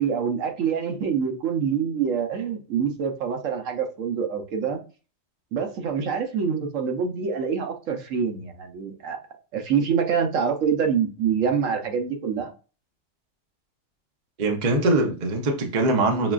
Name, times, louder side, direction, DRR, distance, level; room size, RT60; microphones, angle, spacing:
voice 1, 0.0-4.8 5.5-9.2 9.5-12.5, right 6 dB, 80° right, 1.1 m, -25 dB
voice 2, 14.4-16.3, right 2 dB, 40° right, 0.7 m, -22 dB
5.8 x 2.4 x 2.3 m
omnidirectional pair, 1.3 m